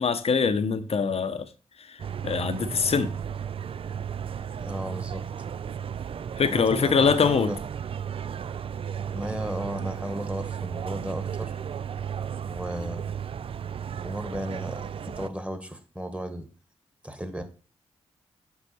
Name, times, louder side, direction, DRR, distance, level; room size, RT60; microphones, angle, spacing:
voice 1, 0.0-1.5 1.8-2.0 2.2-3.1 6.4-7.5, left 5 dB, 55° left, 0.8 m, -23 dB
sound 1, 2.0-15.3, right 8 dB, 50° right, 0.4 m, -34 dB
voice 2, 4.6-5.2 6.4-7.6 9.1-11.6 12.4-13.0 14.0-16.5 17.0-17.4, equal, 10° right, 1.4 m, -34 dB
6.1 x 4.8 x 4.2 m
supercardioid pair, 40°, 12 cm